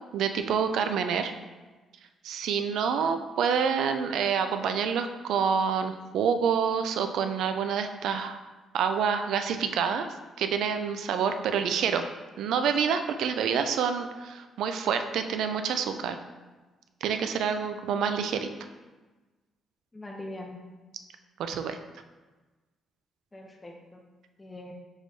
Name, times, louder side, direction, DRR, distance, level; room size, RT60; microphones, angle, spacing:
voice 1, 0.1-1.3 2.2-8.4 8.7-10.1 10.4-12.0 12.4-16.2 17.0-18.5 21.4-21.8, right 7 dB, 80° right, 8 dB, 0.3 m, -27 dB
voice 2, 19.9-20.6 23.3-24.1 24.4-24.7, left 1 dB, 20° left, 1 dB, 0.6 m, -42 dB
6.3 x 3.1 x 2.6 m, 1.2 s
cardioid pair, 90°, 0 cm